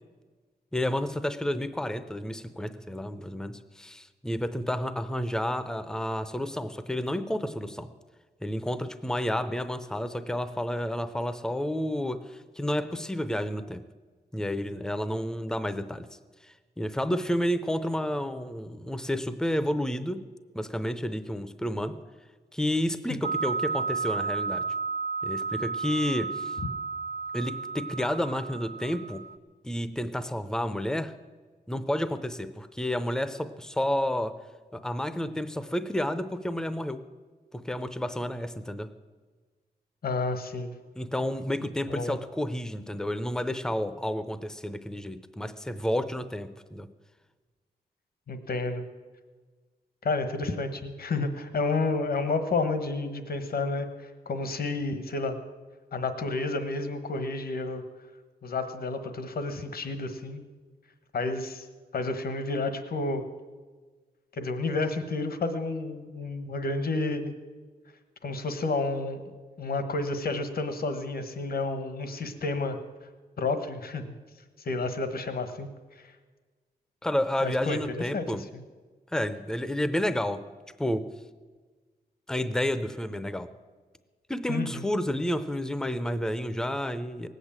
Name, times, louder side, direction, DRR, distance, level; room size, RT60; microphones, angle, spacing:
voice 1, 0.7-7.9 8.4-13.8 14.3-16.1 16.8-20.2 20.5-21.9 22.5-24.6 25.2-26.6 27.3-29.2 29.6-31.1 31.7-34.3 34.7-37.0 37.5-38.9 41.0-46.9 77.0-78.4 79.1-80.4 80.8-81.1 82.3-83.5 84.3-87.3, left 1 dB, 5° left, 12 dB, 0.6 m, -30 dB
sound 1, 23.2-29.4, right 5 dB, 70° right, 0.8 m, -32 dB
voice 2, 40.0-40.7 41.9-42.2 48.3-48.8 50.0-55.4 55.9-57.8 58.4-60.4 61.1-61.7 61.9-63.2 64.3-67.3 68.2-72.8 73.4-74.0 74.6-75.7 76.0-76.1 77.4-78.2 84.5-84.8, left 3 dB, 65° left, 9 dB, 1.3 m, -30 dB
18.5 x 8.2 x 8.8 m, 1.4 s
wide cardioid pair, 155°, 17 cm